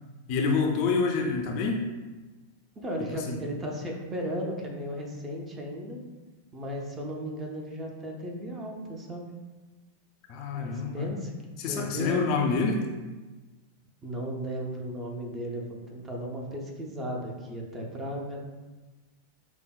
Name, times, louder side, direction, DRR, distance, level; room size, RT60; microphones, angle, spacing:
voice 1, 0.3-1.8 3.1-3.4 10.3-11.1 11.6-12.8, left 4 dB, 45° left, 2 dB, 0.4 m, -27 dB
voice 2, 2.8-6.0 6.5-9.2 10.5-11.3 11.7-12.4 14.0-18.5, equal, 20° right, 1 dB, 0.6 m, -35 dB
5.0 x 2.1 x 2.3 m, 1.2 s
figure-of-eight pair, 90°, 0 cm